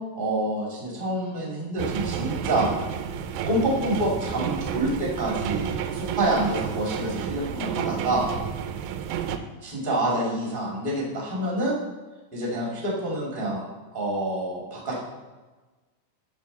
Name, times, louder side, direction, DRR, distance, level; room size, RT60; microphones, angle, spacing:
voice 1, 0.1-2.7 3.5-8.3 9.6-11.8 12.3-13.6 13.9-15.0, right 1 dB, 20° right, -4 dB, 1.4 m, -27 dB
sound 1, 1.8-9.4, right 8 dB, 90° right, 2.9 m, -31 dB
8.8 x 6.9 x 4.1 m, 1.2 s
omnidirectional pair, 5.2 m